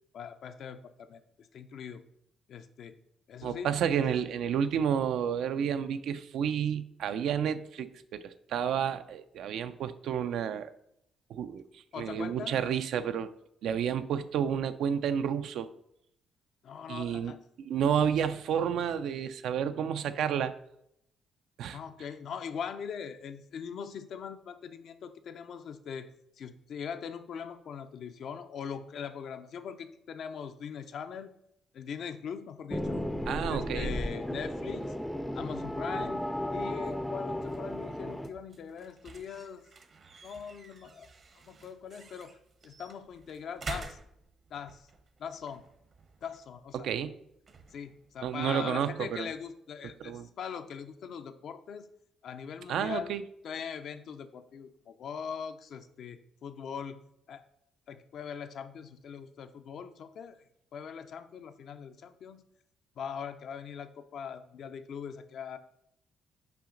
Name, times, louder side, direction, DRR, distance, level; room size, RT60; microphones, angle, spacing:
voice 1, 0.1-2.0 2.5-3.0 3.3-3.7 11.9-12.7 16.6-17.4 21.7-26.1 26.4-31.3 31.7-33.1 33.5-34.9 35.3-36.2 36.5-39.6 40.2-41.1 41.5-42.4 42.6-44.0 44.5-44.9 45.2-45.6 46.2-46.9 47.7-51.9 52.2-53.2 53.4-57.0 57.3-57.4 57.9-60.4 60.7-62.4 63.0-65.6, left 7 dB, 65° left, 9 dB, 0.5 m, -41 dB
voice 2, 3.4-10.7 11.3-13.3 13.6-15.7 16.9-17.3 17.6-20.5 21.6-21.8 33.3-33.9 46.7-47.1 48.2-49.3 50.0-50.3 52.7-53.2, right 8 dB, 80° right, 11 dB, 0.4 m, -30 dB
sound 1, 32.7-38.3, left 1 dB, 5° left, 0.4 m, -34 dB
sound 2, 36.8-49.5, right 4 dB, 50° right, 0.8 m, -50 dB
5.8 x 5.1 x 3.8 m, 0.76 s
cardioid pair, 90°, 0 cm